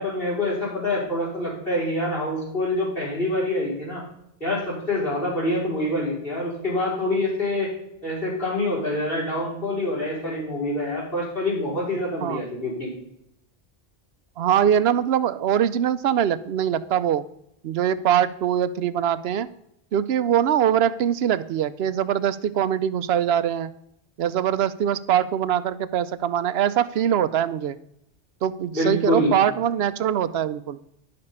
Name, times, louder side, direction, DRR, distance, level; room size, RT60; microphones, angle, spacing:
voice 1, 0.0-4.0 4.4-7.7 8.0-12.9 28.7-29.4, left 1 dB, 60° left, -6 dB, 5.1 m, -26 dB
voice 2, 14.4-17.2 17.6-19.5 19.9-23.7 24.2-27.8 28.4-30.8, right 9 dB, 75° right, 14 dB, 0.8 m, -22 dB
10.5 x 6.8 x 5.5 m, 0.78 s
omnidirectional pair, 1.1 m